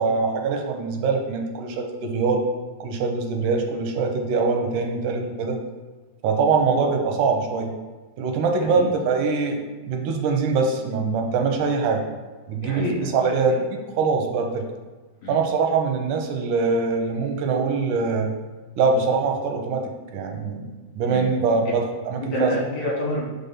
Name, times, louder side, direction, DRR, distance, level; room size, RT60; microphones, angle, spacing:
voice 1, 0.0-2.4 2.8-5.6 6.2-7.7 8.2-9.6 9.8-12.0 12.5-13.6 13.9-14.7 15.3-18.3 18.8-19.9 20.1-22.5, right 4 dB, 90° right, 2 dB, 2.4 m, -23 dB
voice 2, 12.6-13.1 15.2-15.4 21.1-21.2 22.2-23.3, left 2 dB, 70° left, -3 dB, 2.6 m, -27 dB
5.4 x 3.9 x 5.6 m, 1.3 s
omnidirectional pair, 3.5 m